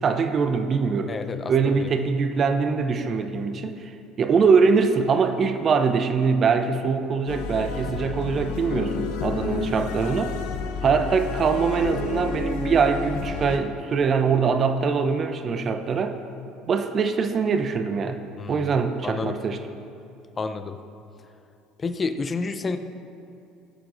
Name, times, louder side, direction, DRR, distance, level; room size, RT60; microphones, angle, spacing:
voice 1, 0.0-1.1 1.5-3.9 4.2-10.3 10.8-16.2 16.7-18.2 18.5-19.6, right 5 dB, 40° right, 8 dB, 0.7 m, -23 dB
voice 2, 1.1-1.9 18.4-18.7 19.0-19.4 20.4-20.8 21.8-22.8, left 4 dB, 30° left, 8 dB, 0.6 m, -30 dB
sound 1, 7.3-13.6, left 4 dB, 70° left, 0.8 m, -30 dB
20.0 x 6.9 x 2.6 m, 2.6 s
hypercardioid pair, 65°, 0 cm